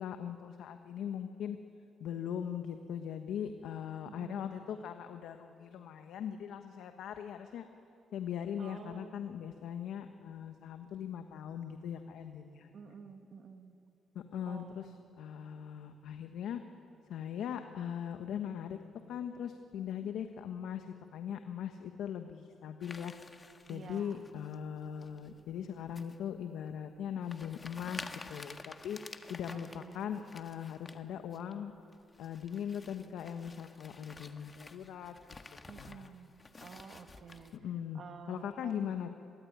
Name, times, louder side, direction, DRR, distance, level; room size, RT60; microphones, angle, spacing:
voice 1, 0.0-1.6 2.0-7.7 8.1-12.9 14.1-14.9 15.2-16.6 17.1-18.8 19.1-20.9 21.1-23.1 23.7-31.7 32.2-35.2 35.5-36.1 37.6-38.0 38.3-39.2, left 8 dB, 80° left, 7 dB, 1.2 m, -40 dB
voice 2, 4.0-4.4 8.6-9.1 12.7-13.7 14.5-14.9 19.7-20.1 23.7-24.2 29.5-30.1 35.7-37.6 37.9-38.7, right 6 dB, 60° right, 6 dB, 1.9 m, -51 dB
sound 1, 22.8-24.6 25.0-25.4 26.0-26.2 26.7-26.8 27.2-31.0 31.3-31.5 31.9-37.6, left 3 dB, 30° left, 1.5 m, -51 dB
25.5 x 22.0 x 9.5 m, 2.6 s
cardioid pair, 90°, 0 cm